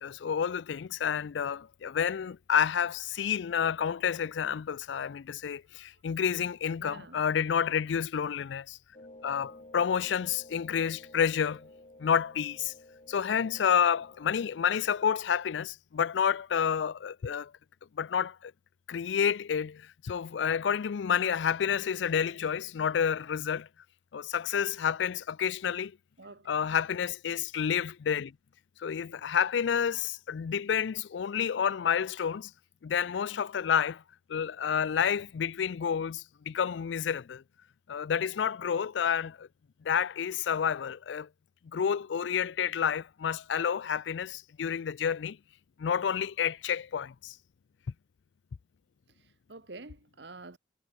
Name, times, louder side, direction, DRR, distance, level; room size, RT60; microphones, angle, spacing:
voice 1, 0.0-8.8 9.2-11.7 12.0-12.7 13.1-17.5 18.0-18.5 18.9-23.7 24.1-25.9 26.5-28.3 28.8-32.5 32.8-34.0 34.3-37.4 37.9-39.5 39.8-41.3 41.7-45.4 45.8-47.4, left 8 dB, 85° left, 0.4 m, -29 dB
voice 2, 6.8-7.2 26.2-26.5 49.1-50.6, right 3 dB, 70° right, 1.7 m, -48 dB
sound 1, 8.9-15.1, left 1 dB, 35° left, 2.7 m, -53 dB
head